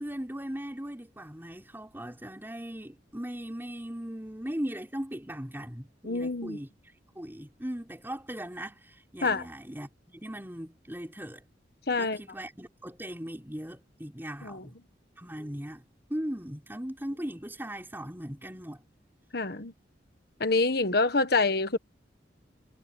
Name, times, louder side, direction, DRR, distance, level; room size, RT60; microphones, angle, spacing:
voice 1, 0.0-6.7 7.1-11.4 12.0-14.8 15.2-18.8, equal, 10° right, 5.1 m, -38 dB
voice 2, 6.0-6.6 9.2-9.5 11.9-12.2 14.4-14.7 19.3-19.7 20.4-21.8, left 3 dB, 60° left, 1.5 m, -26 dB
head